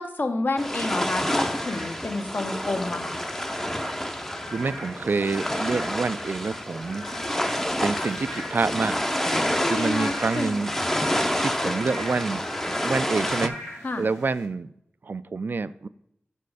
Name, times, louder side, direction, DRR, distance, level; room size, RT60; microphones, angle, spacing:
voice 1, 0.0-3.2 9.5-10.6 13.8-14.0, left 2 dB, 50° left, 7 dB, 0.9 m, -29 dB
sound 1, 0.6-13.5, equal, 10° left, 0.6 m, -28 dB
Frog / Rain, 1.0-14.5, left 2 dB, 85° left, 2.0 m, -41 dB
voice 2, 4.5-7.1 7.8-9.1 9.7-10.7 11.4-12.4 12.8-14.7 15.0-15.9, right 4 dB, 50° right, 15 dB, 0.3 m, -27 dB
6.9 x 5.2 x 4.8 m, 0.75 s
cardioid pair, 55°, 4 cm